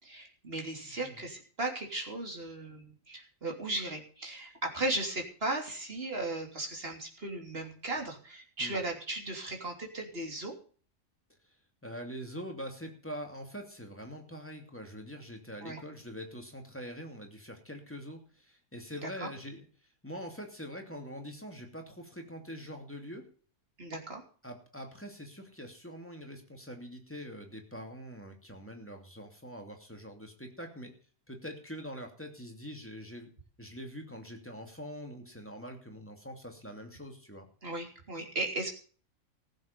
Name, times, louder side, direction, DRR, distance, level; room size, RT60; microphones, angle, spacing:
voice 1, 0.0-10.5 15.6-15.8 18.9-19.3 23.8-24.2 37.6-38.7, right 2 dB, 45° right, 2 dB, 3.5 m, -36 dB
voice 2, 0.8-1.3 8.6-8.8 11.8-19.7 20.0-23.2 24.4-30.9 31.3-33.3 33.6-37.5, equal, 10° left, 3 dB, 2.8 m, -44 dB
15.5 x 8.1 x 6.9 m, 0.41 s
omnidirectional pair, 1.4 m